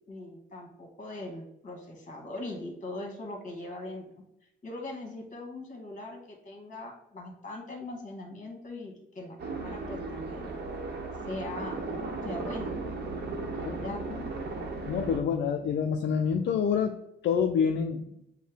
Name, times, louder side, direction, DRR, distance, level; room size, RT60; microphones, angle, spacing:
voice 1, 0.1-4.0 4.6-10.5 11.3-11.9 12.2-12.7 13.4-14.3, left 2 dB, 40° left, 1 dB, 1.4 m, -40 dB
sound 1, 9.4-15.2, right 3 dB, 55° right, 0.9 m, -36 dB
voice 2, 14.9-17.0 17.2-18.1, left 7 dB, 65° left, 5 dB, 0.4 m, -27 dB
6.3 x 2.1 x 3.4 m, 0.83 s
cardioid pair, 95°, 20 cm